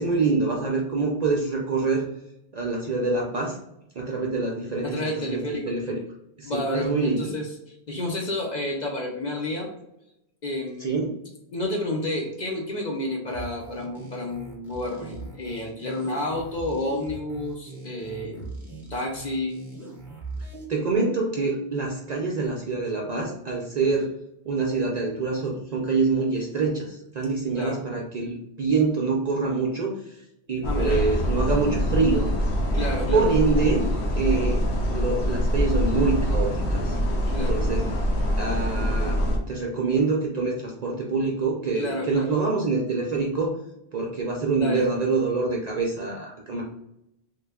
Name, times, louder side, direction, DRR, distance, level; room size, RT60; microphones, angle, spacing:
voice 1, 0.0-2.0 2.5-3.6 4.0-5.9 6.4-7.3 10.8-11.1 20.7-24.1 24.5-30.2 30.5-32.3 33.1-33.9 34.2-37.0 37.5-37.9 38.4-39.2 39.5-43.6 43.9-46.6, right 4 dB, 55° right, -1 dB, 0.5 m, -25 dB
voice 2, 4.8-5.7 6.4-9.7 10.4-11.1 11.5-18.5 18.9-19.6 27.5-27.8 30.6-31.0 32.7-33.3 37.3-37.6 41.7-42.3 44.6-44.8, left 1 dB, 50° left, -1 dB, 0.6 m, -30 dB
sound 1, 13.3-20.6, right 3 dB, ahead, 0.8 m, -40 dB
sound 2, 30.6-39.4, equal, 85° left, 1.0 m, -24 dB
3.3 x 2.2 x 3.4 m, 0.82 s
omnidirectional pair, 1.1 m